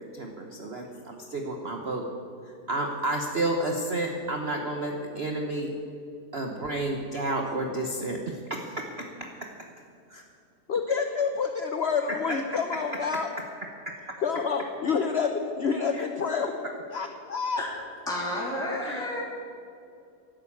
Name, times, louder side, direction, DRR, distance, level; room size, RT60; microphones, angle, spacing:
voice 1, 0.0-2.1 2.7-5.7 6.3-9.5 10.1-10.2 13.9-14.0 15.9-16.0 18.8-19.1, right 2 dB, 45° right, 2 dB, 1.1 m, -31 dB
voice 2, 10.7-13.3 14.2-16.5 16.9-17.6, left 5 dB, 50° left, 6 dB, 0.8 m, -28 dB
voice 3, 18.1-19.2, left 1 dB, ahead, -5 dB, 2.9 m, -31 dB
12.0 x 11.5 x 8.5 m, 2.6 s
omnidirectional pair, 1.8 m